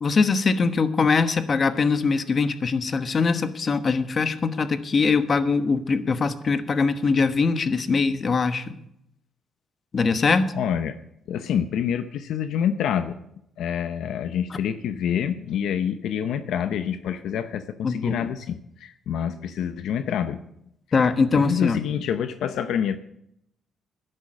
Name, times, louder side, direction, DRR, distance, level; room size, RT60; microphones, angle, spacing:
voice 1, 0.0-8.6 9.9-10.5 17.8-18.3 20.9-21.8, left 4 dB, 40° left, 10 dB, 1.1 m, -22 dB
voice 2, 10.5-10.9 11.3-13.2 13.6-20.4 21.3-23.0, left 8 dB, 80° left, 10 dB, 0.7 m, -27 dB
11.0 x 11.0 x 6.3 m, 0.77 s
cardioid pair, 90°, 0 cm